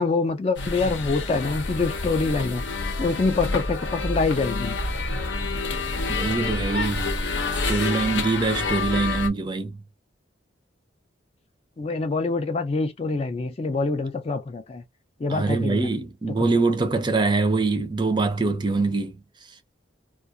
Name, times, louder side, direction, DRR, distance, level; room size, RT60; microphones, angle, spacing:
voice 1, 0.0-2.6 3.0-4.7 11.8-14.8 15.2-15.9 16.4-16.5, left 3 dB, 35° left, 0.3 m, -25 dB
sound 1, 0.6-9.3, left 3 dB, 75° left, 0.7 m, -28 dB
voice 2, 6.1-7.1 7.5-9.8 15.3-19.2, right 3 dB, 25° right, 0.5 m, -24 dB
2.3 x 2.2 x 2.6 m
head